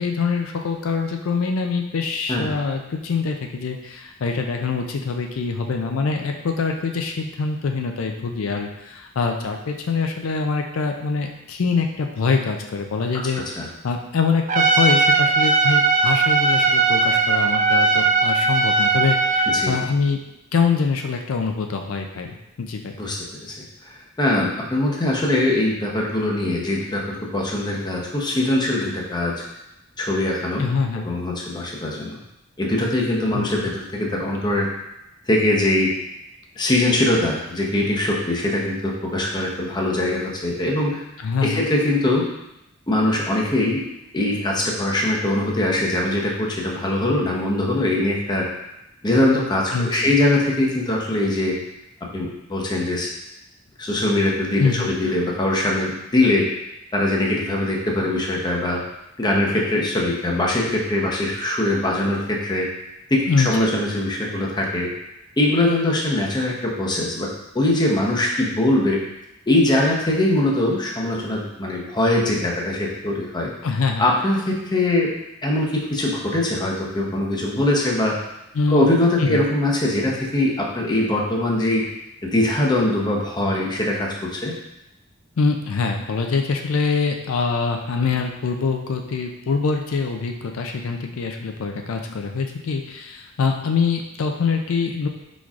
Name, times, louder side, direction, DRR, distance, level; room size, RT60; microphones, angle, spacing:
voice 1, 0.0-13.6 13.8-20.2 20.5-22.9 30.6-31.1 33.3-33.7 41.2-41.6 49.7-50.1 54.6-54.9 63.3-63.7 73.6-74.1 78.5-78.9 79.2-79.4 85.4-95.1, left 4 dB, 80° left, 3 dB, 0.4 m, -24 dB
Trumpet, 14.5-19.7, right 3 dB, 35° right, 0.4 m, -18 dB
voice 2, 23.9-29.4 30.0-30.7 31.0-32.2 32.6-34.7 35.3-35.9 36.6-41.0 41.4-42.3 42.9-43.8 44.1-48.5 49.0-51.6 52.1-53.1 53.8-56.5 56.9-58.8 59.2-62.7 63.1-64.9 65.4-69.0 69.5-73.5 74.0-75.1 75.4-78.2 78.7-81.8 82.2-84.5, left 1 dB, 20° left, -2 dB, 0.7 m, -22 dB
4.6 x 4.1 x 2.4 m, 0.88 s
head